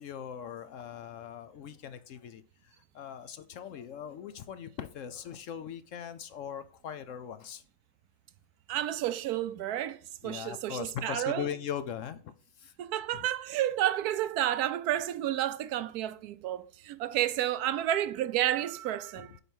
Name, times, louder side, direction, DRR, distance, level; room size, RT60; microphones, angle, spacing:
voice 1, 0.0-7.6 10.2-12.2 12.6-12.7, left 9 dB, 65° left, 0.9 m, -40 dB
voice 2, 8.7-11.5 12.8-19.4, right 12 dB, 85° right, 1.1 m, -31 dB
8.0 x 4.4 x 6.2 m
omnidirectional pair, 1.6 m